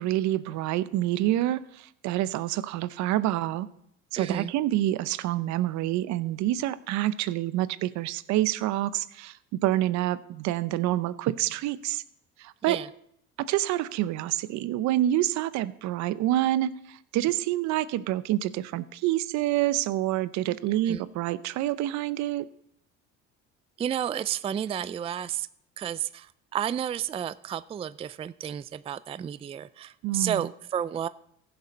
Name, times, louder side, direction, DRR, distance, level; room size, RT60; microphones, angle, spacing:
voice 1, 0.0-3.7 4.1-12.0 12.4-12.8 13.4-22.5 30.0-30.4, right 14 dB, 65° right, 16 dB, 0.7 m, -27 dB
voice 2, 4.1-4.5 12.7-12.9 20.8-21.0 23.8-25.5 25.8-31.1, right 9 dB, 20° right, 16 dB, 0.3 m, -31 dB
15.5 x 6.9 x 5.1 m, 0.71 s
supercardioid pair, 90°, 30 cm